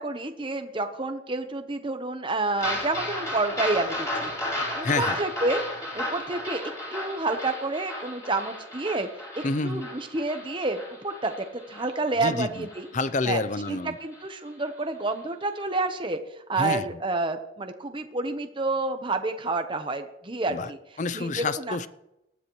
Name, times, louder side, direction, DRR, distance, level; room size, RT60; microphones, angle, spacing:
voice 1, 0.0-5.6 5.9-6.6 6.9-9.1 9.3-12.9 13.2-13.4 13.7-16.2 16.5-20.8 21.1-21.8, right 2 dB, 25° right, 6 dB, 0.9 m, -29 dB
sound 1, 2.6-13.3 13.7-13.8 14.1-14.2 14.6-14.7, left 1 dB, 15° left, 5.0 m, -34 dB
voice 2, 4.8-5.2 9.4-9.9 12.2-12.7 12.9-14.0 16.6-16.8 20.5-20.7 21.0-21.9, left 3 dB, 40° left, 15 dB, 0.5 m, -28 dB
19.5 x 13.0 x 3.1 m, 0.88 s
head